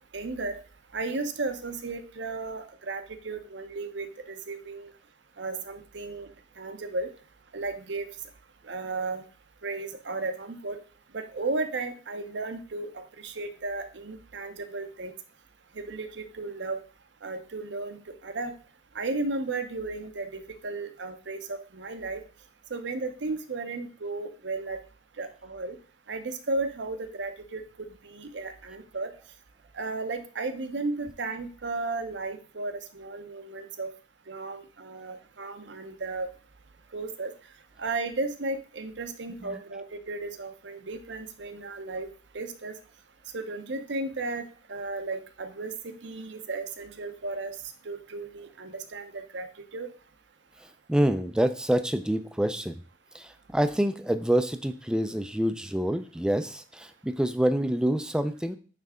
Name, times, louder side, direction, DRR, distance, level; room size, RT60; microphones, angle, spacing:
voice 1, 0.1-0.6 0.9-4.9 5.4-6.3 6.6-7.1 7.5-8.1 8.6-9.2 9.6-10.8 11.1-15.1 15.8-16.8 17.2-18.0 18.2-18.5 18.9-22.2 22.7-24.8 25.2-25.7 26.1-27.6 28.0-29.1 29.7-33.9 34.3-36.3 36.9-37.3 37.8-42.1 42.3-42.7 43.3-47.5 47.8-49.5 49.7-49.9, right 3 dB, 70° right, 8 dB, 0.8 m, -34 dB
voice 2, 50.6-52.8 53.1-58.6, right 1 dB, 5° right, 9 dB, 0.4 m, -27 dB
9.1 x 3.3 x 3.6 m, 0.39 s
head